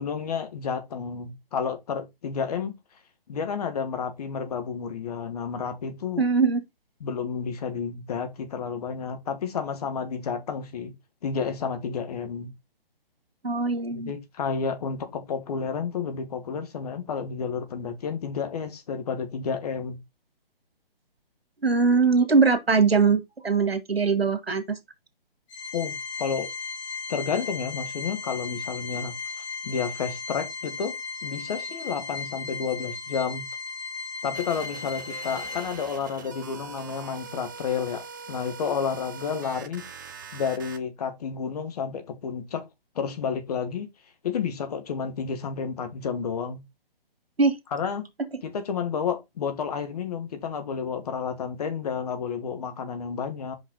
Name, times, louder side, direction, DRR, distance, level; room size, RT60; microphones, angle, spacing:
voice 1, 0.0-2.7 3.3-6.2 7.0-10.9 11.2-12.5 13.9-20.0 25.7-26.5 27.1-29.1 29.6-31.0 31.2-33.4 34.2-39.8 40.3-42.6 42.9-43.9 44.2-46.6 47.7-48.0 48.4-53.6, left 6 dB, 40° left, 1.6 m, -31 dB
voice 2, 6.2-6.6 13.4-14.1 21.6-24.8 47.4-47.6, right 4 dB, 80° right, 1.9 m, -21 dB
Organ, 25.5-36.1, left 4 dB, 20° left, 2.6 m, -36 dB
sound 1, 34.3-40.8, right 5 dB, 20° right, 0.5 m, -42 dB
5.7 x 5.3 x 4.0 m
figure-of-eight pair, 145°, 30 cm